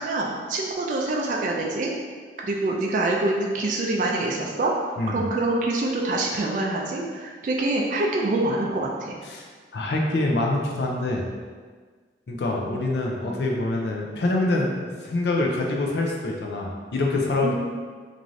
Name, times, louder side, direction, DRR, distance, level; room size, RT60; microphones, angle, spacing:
voice 1, 0.0-1.9 2.4-4.7 5.1-9.2 17.4-17.5, right 2 dB, 45° right, -1 dB, 0.3 m, -25 dB
voice 2, 9.7-11.2 12.3-17.5, left 2 dB, 65° left, 0 dB, 0.4 m, -25 dB
3.1 x 2.5 x 2.5 m, 1.5 s
head